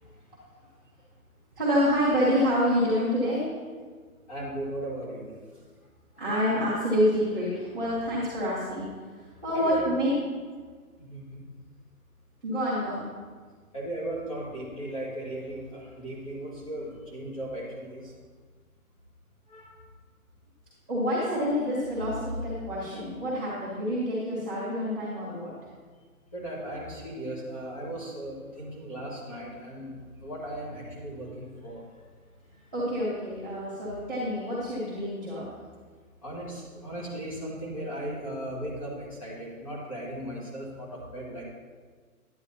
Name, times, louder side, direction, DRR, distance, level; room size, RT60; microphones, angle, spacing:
voice 1, 1.5-3.4 6.2-8.9 9.4-10.1 12.4-13.0 20.9-25.5 32.7-35.5, equal, 5° left, -23 dB, 1.0 m, -27 dB
voice 2, 4.3-5.3 9.5-9.9 11.1-11.4 13.7-18.0 19.5-19.7 26.3-31.8 36.2-41.4, right 1 dB, 20° left, -6 dB, 1.8 m, -37 dB
11.0 x 10.5 x 2.9 m, 1.5 s
hypercardioid pair, 175°, 44 cm